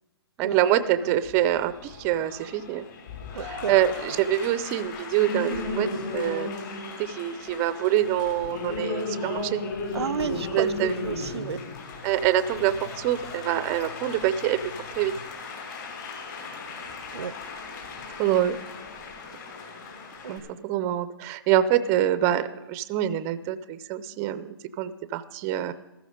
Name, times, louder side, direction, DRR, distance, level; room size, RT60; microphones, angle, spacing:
voice 1, 0.4-2.8 3.3-6.5 7.0-9.6 10.5-11.0 12.0-14.6 14.9-15.1 18.2-18.6 20.3-25.7, right 12 dB, 15° right, 0.4 m, -25 dB
Applause, 0.6-20.4, left 3 dB, 50° left, 5.4 m, -36 dB
voice 2, 3.3-3.7 9.9-11.6 17.1-17.4 20.2-20.4, right 7 dB, 85° right, 0.5 m, -32 dB
Zipper (clothing), 8.0-15.3, left 5 dB, 75° left, 1.1 m, -46 dB
14.5 x 13.5 x 5.1 m
hypercardioid pair, 155°, 14 cm